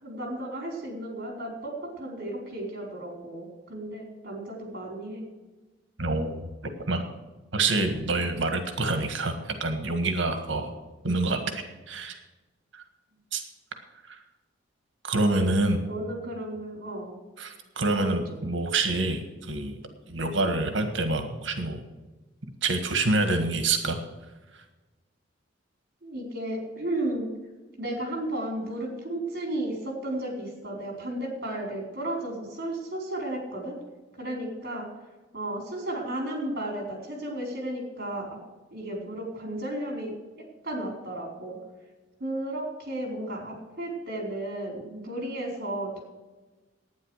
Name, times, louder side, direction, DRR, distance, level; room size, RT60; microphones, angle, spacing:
voice 1, 0.0-5.2 15.2-17.2 17.9-18.4 26.0-27.3 27.8-33.8 34.2-34.9 35.3-38.4 38.7-40.1 40.6-41.6 42.2-46.0, right 1 dB, 50° right, 0 dB, 4.6 m, -34 dB
voice 2, 6.0-6.4 6.9-7.0 7.5-10.7 11.0-12.2 12.7-12.8 13.3-13.4 14.1-14.2 15.0-15.8 17.4-19.8 20.1-21.8 22.6-24.0, right 2 dB, 75° right, 6 dB, 1.7 m, -27 dB
11.5 x 9.7 x 6.5 m, 1.2 s
head